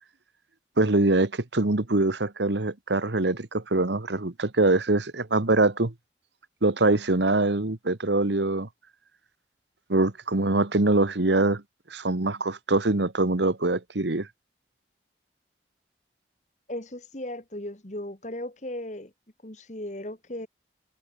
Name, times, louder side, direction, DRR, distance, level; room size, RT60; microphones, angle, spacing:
voice 1, 0.8-5.9 6.6-8.7 9.9-11.6 11.9-14.3, right 2 dB, 80° right, 1.4 m, -23 dB
voice 2, 16.7-19.1 19.4-20.5, left 1 dB, 40° left, 2.0 m, -36 dB
head